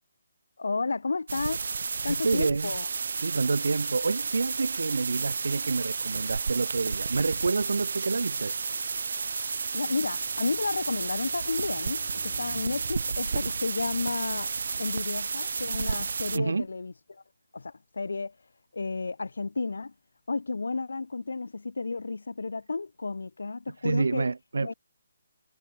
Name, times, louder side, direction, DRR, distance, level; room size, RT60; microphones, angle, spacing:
voice 1, 0.6-1.6 2.0-2.9 9.7-14.5 14.8-17.2 17.5-18.3 18.7-19.9 20.3-24.3 24.6-24.7, left 3 dB, 85° left, 1.3 m, -32 dB
sound 1, 1.3-16.4, right 5 dB, 55° right, 1.6 m, -32 dB
voice 2, 2.1-2.7 3.2-8.6 16.3-16.7 23.8-24.7, right 4 dB, 80° right, 1.1 m, -28 dB
Bowed string instrument, 9.7-13.4, left 13 dB, 20° left, 5.0 m, -55 dB
hypercardioid pair, 175°, 0 cm